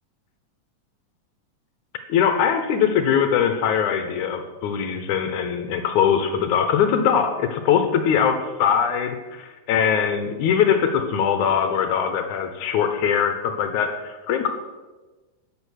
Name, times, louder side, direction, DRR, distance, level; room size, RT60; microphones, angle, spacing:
voice 1, 2.1-14.5, left 7 dB, 85° left, 7 dB, 2.5 m, -21 dB
14.0 x 9.0 x 6.4 m, 1.2 s
omnidirectional pair, 3.4 m